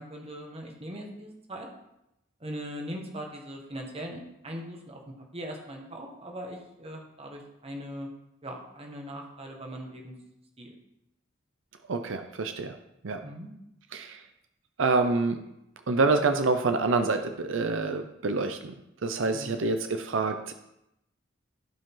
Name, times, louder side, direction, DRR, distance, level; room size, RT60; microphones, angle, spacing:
voice 1, 0.0-1.7 2.4-8.1 8.4-10.2 10.6-10.7 13.2-13.5 19.3-19.6, equal, 30° right, 1 dB, 1.7 m, -40 dB
voice 2, 11.9-12.7 13.0-13.2 13.9-14.2 14.8-15.4 15.9-18.7 19.0-20.5, right 3 dB, 80° right, 7 dB, 0.7 m, -27 dB
15.5 x 5.3 x 3.9 m, 0.85 s
head